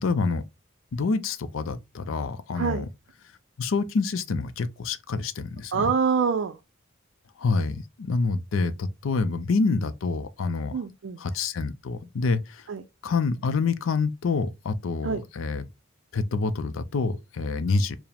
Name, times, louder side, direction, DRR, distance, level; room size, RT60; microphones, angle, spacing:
voice 1, 0.0-0.4 0.9-2.9 3.6-5.9 7.4-10.8 11.2-12.7 13.0-15.6 16.1-18.0, left 4 dB, 80° left, 0.4 m, -27 dB
voice 2, 5.7-6.6 10.7-11.2 12.7-12.8 15.0-15.2, right 6 dB, 70° right, 0.4 m, -25 dB
4.7 x 2.1 x 3.3 m
head